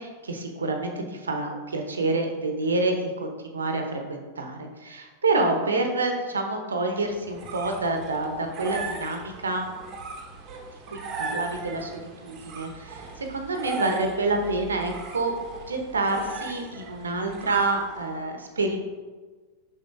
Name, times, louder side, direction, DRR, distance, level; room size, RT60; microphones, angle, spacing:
voice 1, 0.0-9.7 10.9-15.3 15.7-18.8, right 2 dB, 70° right, 4 dB, 0.8 m, -28 dB
sound 1, 7.0-18.2, right 4 dB, 35° right, 1.0 m, -38 dB
6.7 x 5.7 x 2.6 m, 1.4 s
figure-of-eight pair, 90°, 0 cm